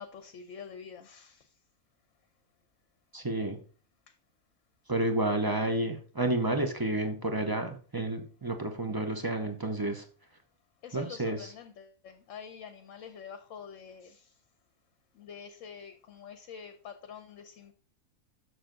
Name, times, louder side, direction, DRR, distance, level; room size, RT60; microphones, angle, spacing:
voice 1, 0.0-1.5 10.8-14.3 15.1-17.7, left 7 dB, 65° left, 1.0 m, -46 dB
voice 2, 3.1-3.6 4.9-10.0 10.9-11.5, right 2 dB, 25° right, 0.4 m, -30 dB
6.8 x 6.3 x 3.8 m
omnidirectional pair, 1.6 m